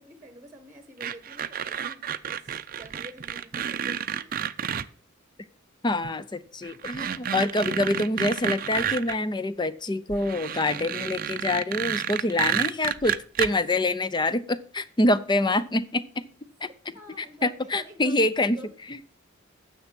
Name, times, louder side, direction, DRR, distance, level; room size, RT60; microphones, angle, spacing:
voice 1, 0.0-4.4 7.7-8.2 13.7-13.8 16.9-18.2 18.5-18.7, right 2 dB, 15° right, 1.2 m, -47 dB
sound 1, 1.0-4.9 6.0-6.1 6.6-9.2 10.1-13.5, right 8 dB, 45° right, 0.5 m, -30 dB
voice 2, 5.8-16.0 16.6-16.7 17.2-18.6 18.9-19.0, left 2 dB, 25° left, 0.6 m, -26 dB
9.9 x 7.3 x 6.0 m
head